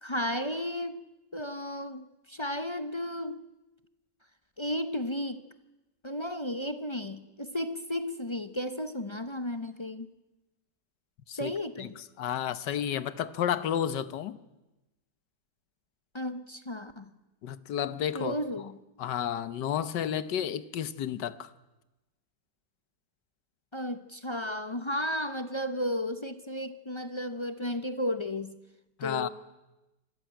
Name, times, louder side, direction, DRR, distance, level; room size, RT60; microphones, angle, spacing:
voice 1, 0.0-1.0 1.3-3.5 4.6-5.4 6.0-10.1 11.4-11.9 16.1-17.1 18.1-18.8 23.7-28.6 29.0-29.3, left 1 dB, 25° left, 10 dB, 0.6 m, -33 dB
voice 2, 12.2-14.4 17.4-18.3 19.0-21.5 29.0-29.3, left 9 dB, 85° left, 15 dB, 1.6 m, -31 dB
25.5 x 14.5 x 9.1 m, 1.0 s
omnidirectional pair, 1.8 m